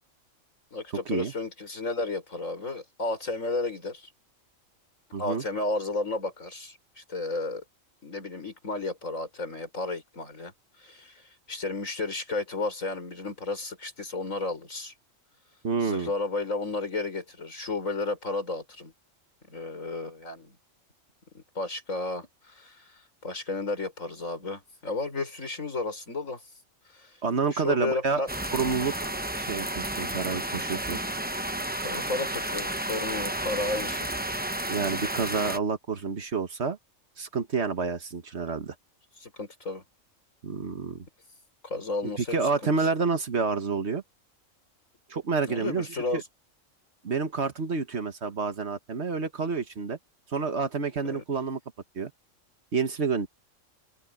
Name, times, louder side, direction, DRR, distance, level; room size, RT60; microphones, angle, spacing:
voice 1, 0.7-4.1 5.1-7.6 8.0-10.5 10.8-14.9 15.8-18.9 19.4-20.6 21.3-26.4 26.9-27.2 27.5-28.3 31.8-34.1 39.2-39.8 41.6-42.7 45.5-46.2 51.0-51.2, left 3 dB, 75° left, 5.9 m, -33 dB
voice 2, 5.1-5.4 15.6-16.1 27.2-28.2 28.5-29.1 29.4-31.0 34.7-36.8 37.2-38.7 40.4-41.0 42.0-44.0 45.1-46.2 47.0-50.0 50.3-51.6 51.9-52.1 52.7-53.3, right 4 dB, 55° right, 1.7 m, -29 dB
sound 1, 28.3-35.6, right 1 dB, 10° right, 0.9 m, -32 dB
omnidirectional pair, 1.4 m